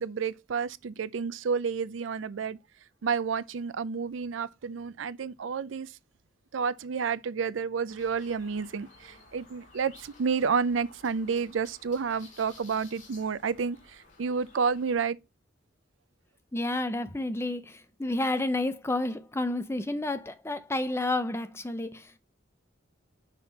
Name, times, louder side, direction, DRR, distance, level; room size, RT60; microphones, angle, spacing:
voice 1, 0.0-2.6 3.0-6.0 6.5-15.2, right 5 dB, 90° right, 0.5 m, -30 dB
sound 1, 7.9-15.0, left 3 dB, 40° left, 2.4 m, -55 dB
voice 2, 16.5-22.2, left 2 dB, 15° left, 0.6 m, -30 dB
6.1 x 5.6 x 4.0 m
head